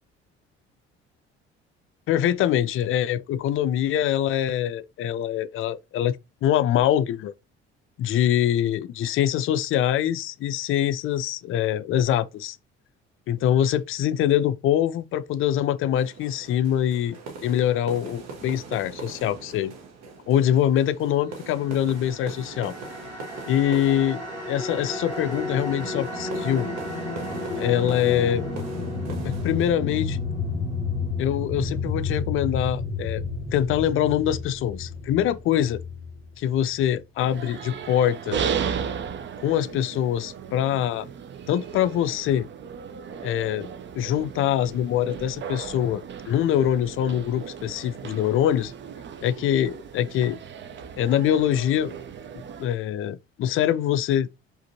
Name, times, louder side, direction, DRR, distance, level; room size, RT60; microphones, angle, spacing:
voice 1, 2.1-6.2 6.4-7.3 8.0-12.6 13.3-19.7 20.3-22.7 23.5-26.7 27.6-28.5 29.2-30.2 31.2-33.2 33.5-35.8 36.4-38.4 39.4-41.1 41.5-42.5 43.2-43.7 43.9-48.7 49.2-50.4 51.0-51.9 52.6-54.3, left 11 dB, 40° left, 0.4 m, -24 dB
sound 1, 15.9-29.7, right 4 dB, 50° right, 1.1 m, -42 dB
sound 2, 21.8-37.0, left 3 dB, 85° right, 1.2 m, -31 dB
sound 3, 37.2-52.7, right 7 dB, 35° right, 0.6 m, -35 dB
5.0 x 2.6 x 2.7 m
figure-of-eight pair, 50°, 33 cm